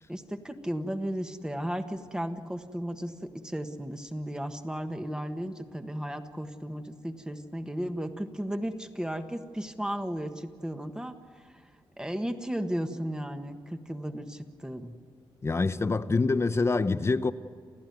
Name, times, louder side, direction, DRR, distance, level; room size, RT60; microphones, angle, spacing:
voice 1, 0.1-11.6 12.0-15.0, equal, 10° right, 1.4 m, -35 dB
voice 2, 15.4-17.3, left 3 dB, 30° left, 0.8 m, -25 dB
28.5 x 15.0 x 9.4 m
cardioid pair, 110°, 10 cm